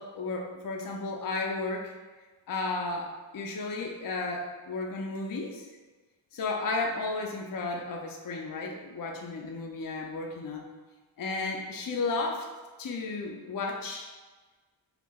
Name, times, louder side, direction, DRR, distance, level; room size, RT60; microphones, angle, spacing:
voice 1, 0.0-1.9 2.5-5.7 6.3-10.7 11.2-12.5 12.8-14.1, left 3 dB, 45° left, 1 dB, 0.6 m, -33 dB
5.9 x 2.8 x 2.3 m, 1.3 s
wide cardioid pair, 70°, 48 cm